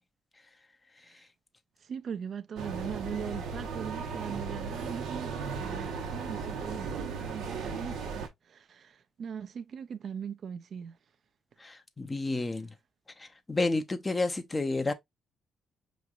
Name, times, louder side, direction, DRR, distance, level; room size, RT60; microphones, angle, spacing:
voice 1, 1.8-11.0, right 7 dB, 55° right, 0.4 m, -40 dB
sound 1, 2.6-8.3, right 5 dB, 90° right, 1.0 m, -36 dB
voice 2, 11.6-12.7 13.2-14.9, left 3 dB, 20° left, 0.6 m, -30 dB
5.0 x 3.0 x 2.3 m
cardioid pair, 90°, 0 cm